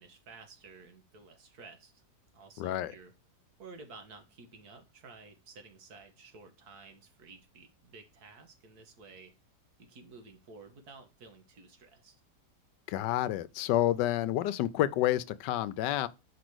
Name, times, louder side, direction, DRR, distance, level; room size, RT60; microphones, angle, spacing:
voice 1, 0.0-2.0 2.3-3.1 3.6-9.3 9.8-12.1, right 4 dB, 65° right, 1.8 m, -53 dB
voice 2, 2.6-2.9 12.9-16.1, left 13 dB, 90° left, 1.2 m, -29 dB
5.1 x 5.1 x 6.1 m
omnidirectional pair, 1.8 m